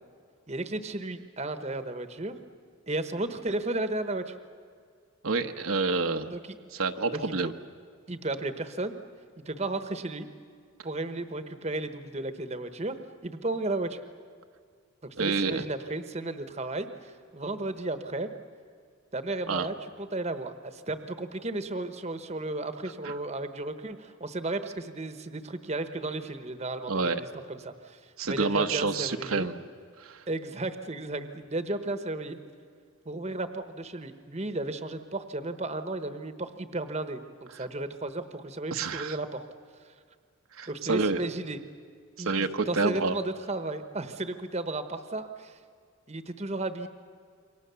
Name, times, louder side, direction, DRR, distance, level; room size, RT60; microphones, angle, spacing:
voice 1, 0.5-2.4 2.9-4.3 6.3-6.6 7.2-7.5 8.1-9.0 9.4-10.3 10.8-14.0 15.2-18.3 19.1-29.5 30.3-32.4 33.0-39.4 40.7-41.6 42.2-45.6 46.1-46.9, right 2 dB, 30° right, 9 dB, 1.0 m, -34 dB
voice 2, 5.2-6.3 6.7-7.5 15.2-15.6 19.5-19.7 23.0-23.1 26.9-27.2 28.2-29.5 30.0-30.2 38.7-39.2 40.6-41.3 42.2-43.1, right 4 dB, 70° right, 6 dB, 1.0 m, -28 dB
28.0 x 24.0 x 6.9 m, 2.1 s
head